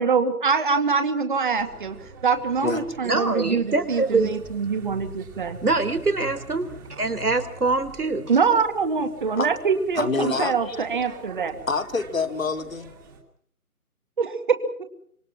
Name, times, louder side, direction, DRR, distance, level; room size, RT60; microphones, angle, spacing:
voice 1, 0.0-2.0 2.2-5.6 8.3-11.6 14.2-14.6, right 5 dB, 35° right, 2.2 m, -24 dB
sound 1, 1.6-13.2, right 4 dB, 15° right, 2.4 m, -44 dB
voice 2, 3.1-4.3 5.6-8.3, right 3 dB, 80° right, 3.5 m, -24 dB
voice 3, 9.9-10.8 11.7-12.9, left 4 dB, 60° left, 2.5 m, -26 dB
26.0 x 24.5 x 6.0 m
figure-of-eight pair, 165°, 45 cm